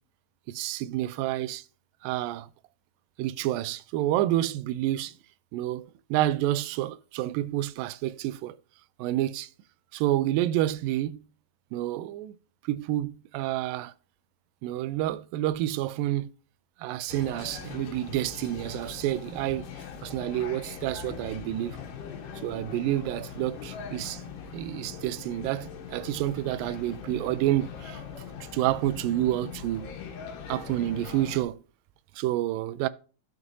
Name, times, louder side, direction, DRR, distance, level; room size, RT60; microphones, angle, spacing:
voice 1, 0.5-1.6 2.0-2.5 3.2-5.1 5.5-8.6 9.0-9.5 9.9-11.3 11.7-12.4 12.6-13.9 14.6-16.3 16.8-19.7 20.0-21.8 22.4-24.3 24.5-28.0 28.5-29.9 30.5-31.6 32.2-32.9, right 14 dB, 85° right, 2.3 m, -29 dB
sound 1, 17.1-31.4, left 7 dB, 70° left, 2.8 m, -41 dB
12.5 x 6.4 x 2.7 m
omnidirectional pair, 4.0 m